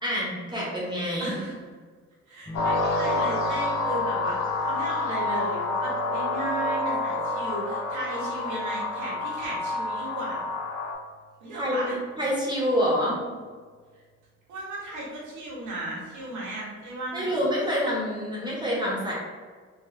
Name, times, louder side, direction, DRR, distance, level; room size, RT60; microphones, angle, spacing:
voice 1, 0.0-1.3 11.6-13.2 17.1-19.1, equal, 15° right, -5 dB, 1.1 m, -27 dB
voice 2, 1.2-1.6 2.3-10.5 11.4-12.0 14.5-17.4, right 1 dB, 80° right, -4 dB, 1.3 m, -35 dB
sound 1, 2.5-10.9, left 2 dB, 65° left, 0.7 m, -28 dB
sound 2, 2.5-11.5 13.0-13.5, right 2 dB, 10° left, 0.5 m, -46 dB
3.8 x 2.6 x 2.6 m, 1.6 s
cardioid pair, 90°, 30 cm